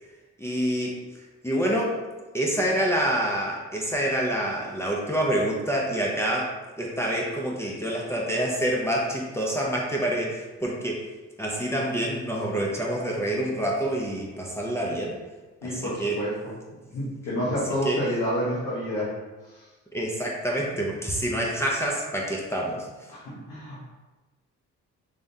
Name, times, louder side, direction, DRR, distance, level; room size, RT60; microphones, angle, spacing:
voice 1, 0.4-1.0 1.4-2.0 2.3-11.0 11.4-15.2 15.6-16.2 17.8-18.0 19.9-22.9, right 1 dB, 10° left, -3 dB, 0.6 m, -27 dB
voice 2, 15.6-16.5 16.9-19.1 19.5-19.6 23.1-23.8, equal, 75° left, -8 dB, 1.2 m, -29 dB
3.6 x 3.3 x 2.7 m, 1.2 s
cardioid pair, 90°, 30 cm